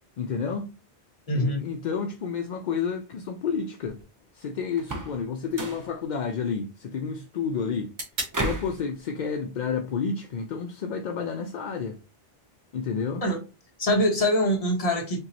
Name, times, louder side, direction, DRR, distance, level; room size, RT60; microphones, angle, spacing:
voice 1, 0.2-0.7 1.3-4.0 4.3-7.9 8.4-12.0 12.7-13.2, left 6 dB, 55° left, 0.5 m, -30 dB
voice 2, 1.3-1.7 13.2-13.4 13.8-15.2, left 1 dB, 35° left, 1.0 m, -24 dB
sound 1, 3.9-11.8, right 1 dB, 80° right, 1.9 m, -45 dB
sound 2, 4.8-5.2 5.5-5.9 8.3-8.8, right 2 dB, 25° right, 0.4 m, -31 dB
4.5 x 3.0 x 2.8 m
omnidirectional pair, 1.1 m